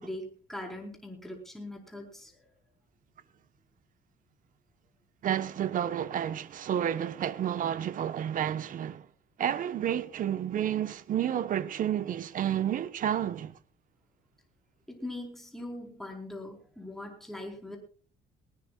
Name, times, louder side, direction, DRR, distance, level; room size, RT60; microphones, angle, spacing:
voice 1, 0.0-2.4 14.9-17.8, left 1 dB, ahead, 4.4 m, -41 dB
voice 2, 5.2-9.1 9.4-13.5, right 10 dB, 55° right, 1.2 m, -30 dB
19.5 x 19.0 x 2.4 m
cardioid pair, 110°, 17 cm